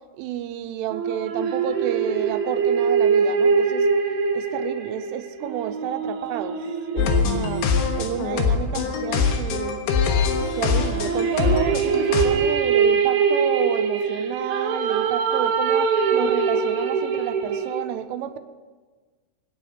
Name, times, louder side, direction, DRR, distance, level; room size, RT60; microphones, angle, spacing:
voice 1, 0.2-3.9 4.3-6.6 6.9-7.6 8.0-9.8 10.6-18.4, right 11 dB, 80° right, 9 dB, 3.2 m, -30 dB
sound 1, 0.9-8.6 10.4-17.8, right 6 dB, 60° right, 2.0 m, -23 dB
sound 2, 7.0-12.3, left 6 dB, 75° left, 3.4 m, -23 dB
25.5 x 9.5 x 5.0 m, 1.4 s
omnidirectional pair, 5.8 m